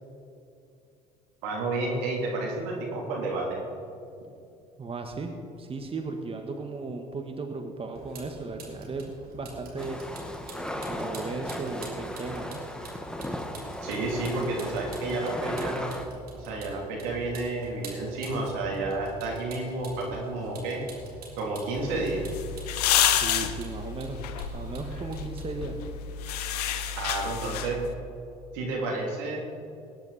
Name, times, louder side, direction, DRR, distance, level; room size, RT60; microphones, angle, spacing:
voice 1, 1.4-3.6 13.8-15.9 16.3-20.8 21.4-22.2 27.0-27.8 28.5-29.4, right 2 dB, 75° right, -1 dB, 3.2 m, -31 dB
voice 2, 4.8-10.0 10.9-12.6 23.1-24.2 24.5-25.8, right 3 dB, 30° right, 4 dB, 1.5 m, -36 dB
Vehicle, 7.9-25.9, right 2 dB, 50° right, 3.9 m, -46 dB
sound 1, 9.8-16.0, equal, 5° left, 1.5 m, -36 dB
sound 2, 21.8-27.9, left 10 dB, 85° left, 0.9 m, -29 dB
20.5 x 10.5 x 4.2 m, 2.6 s
hypercardioid pair, 70°, 20 cm